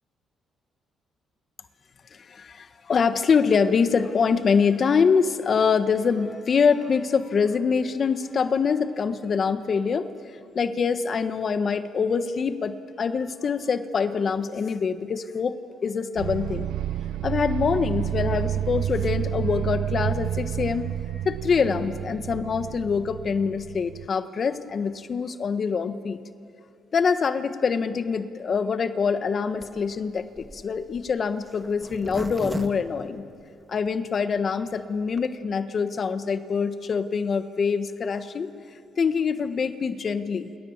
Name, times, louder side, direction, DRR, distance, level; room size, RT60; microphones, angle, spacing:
voice 1, 2.1-10.1 10.5-15.5 15.8-16.7 17.2-20.9 21.2-26.2 26.9-33.3 33.7-38.5 39.0-40.5, left 5 dB, 45° left, 10 dB, 1.3 m, -25 dB
sound 1, 16.2-24.1, right 11 dB, 85° right, 0.6 m, -30 dB
Zipper (clothing), 29.6-33.9 34.4-34.5 34.6-34.7 35.0-35.3, right 2 dB, 15° right, 1.9 m, -38 dB
29.5 x 27.5 x 7.3 m, 2.5 s
cardioid pair, 90°, 0 cm